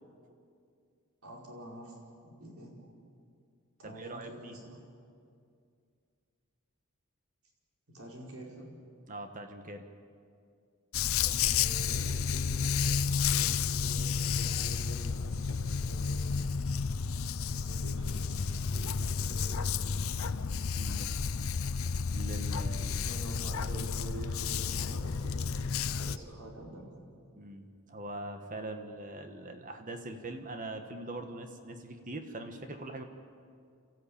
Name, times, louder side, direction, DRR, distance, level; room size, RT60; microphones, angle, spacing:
voice 1, 1.2-2.7 3.8-4.8 7.9-8.7 11.2-16.8 17.5-20.6 22.7-25.5 25.9-26.9, right 1 dB, 75° right, -1 dB, 4.9 m, -47 dB
voice 2, 3.8-4.6 9.1-9.9 20.8-21.1 22.1-23.0 27.3-33.0, right 2 dB, 40° right, 6 dB, 1.4 m, -42 dB
Dog, 10.9-26.2, left 6 dB, 70° left, 0.6 m, -31 dB
28.5 x 14.5 x 8.7 m, 2.3 s
head